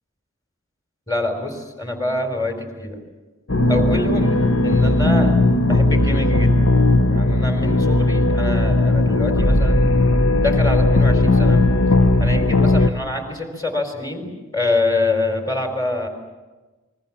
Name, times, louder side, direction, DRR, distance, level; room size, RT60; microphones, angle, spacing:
voice 1, 1.1-3.0 3.7-4.4 4.6-5.3 5.7-6.5 7.0-11.7 12.2-16.1, left 2 dB, 20° left, 6 dB, 3.9 m, -25 dB
sound 1, 3.5-12.9, left 2 dB, 80° left, 1.2 m, -17 dB
29.0 x 22.0 x 7.3 m, 1.2 s
head